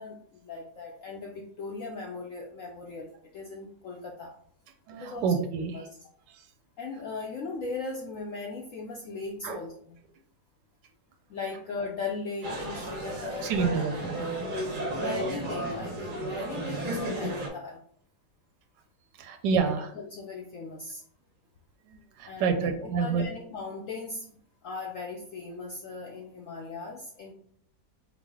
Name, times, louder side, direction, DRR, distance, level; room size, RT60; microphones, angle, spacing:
voice 1, 0.0-4.3 4.9-5.3 5.7-6.1 6.8-10.0 11.3-13.8 14.1-17.8 19.9-21.0 22.2-24.3 24.6-27.3, left 4 dB, 75° left, -1 dB, 0.7 m, -38 dB
voice 2, 4.9-5.7 9.4-9.6 13.4-14.2 19.2-19.9 21.9-23.3, right 5 dB, 85° right, 6 dB, 1.3 m, -28 dB
sound 1, 12.4-17.5, right 1 dB, 50° right, 0.6 m, -33 dB
4.7 x 2.1 x 3.5 m, 0.62 s
omnidirectional pair, 1.9 m